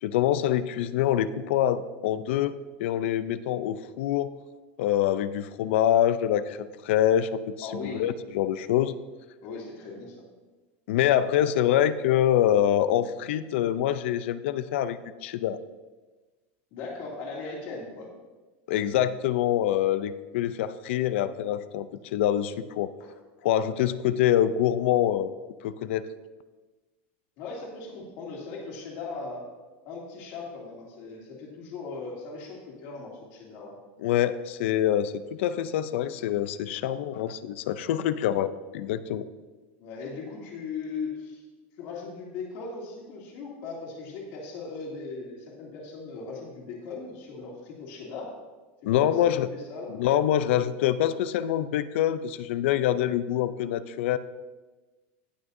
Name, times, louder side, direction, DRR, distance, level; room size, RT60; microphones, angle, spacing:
voice 1, 0.0-2.5 2.8-4.3 4.8-8.9 10.9-15.6 18.7-22.9 23.4-25.3 25.6-26.1 34.0-39.2 48.9-49.5 49.9-54.2, left 11 dB, 75° left, 15 dB, 0.5 m, -25 dB
voice 2, 7.6-8.1 9.4-10.3 16.7-18.1 23.0-23.1 27.4-29.4 29.8-33.8 39.8-41.4 41.8-48.3 48.8-49.2 49.5-49.9, left 4 dB, 50° left, -2 dB, 2.5 m, -38 dB
18.0 x 6.1 x 2.7 m, 1.2 s
supercardioid pair, 170°, 7 cm